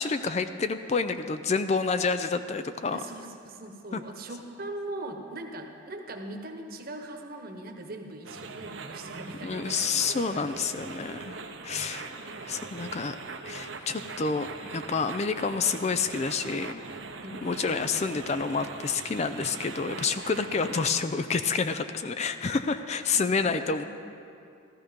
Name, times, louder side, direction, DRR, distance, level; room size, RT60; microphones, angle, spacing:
voice 1, 0.0-3.0 3.9-4.0 9.4-11.4 11.6-12.1 12.4-13.2 13.5-16.8 17.4-23.8, left 4 dB, 35° left, 10 dB, 0.4 m, -28 dB
voice 2, 2.9-9.9 10.4-10.6 11.7-11.9 17.2-17.8 19.9-20.1 22.4-22.6 23.4-23.8, right 1 dB, 50° right, 3 dB, 1.2 m, -41 dB
sound 1, 8.2-20.9, right 4 dB, 65° right, 0.8 m, -41 dB
15.0 x 13.5 x 5.2 m, 2.6 s
head